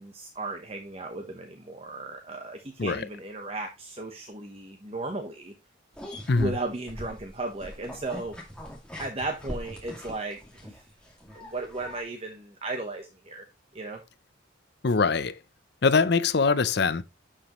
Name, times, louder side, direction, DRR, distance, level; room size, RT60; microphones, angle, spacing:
voice 1, 0.0-5.5 6.4-8.4 9.0-10.8 11.3-13.4 13.7-14.0, right 2 dB, 30° right, 0.9 m, -35 dB
sound 1, 5.9-12.0, equal, 5° left, 2.1 m, -42 dB
voice 2, 14.8-15.4 15.8-17.0, left 4 dB, 55° left, 0.6 m, -23 dB
11.0 x 5.1 x 3.0 m
head